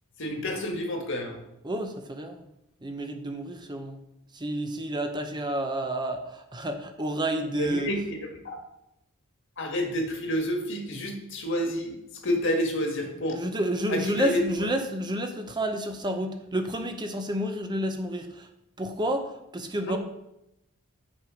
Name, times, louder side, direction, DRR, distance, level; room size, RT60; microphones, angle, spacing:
voice 1, 0.2-1.4 7.6-8.2 8.4-8.6 9.6-12.0 12.2-13.4 13.9-14.4 19.8-20.0, equal, 60° left, 2 dB, 1.7 m, -29 dB
voice 2, 1.6-2.4 2.8-4.0 4.3-7.9 13.3-18.5 18.8-20.0, right 1 dB, 20° right, 6 dB, 0.7 m, -30 dB
7.6 x 6.1 x 5.0 m, 0.85 s
head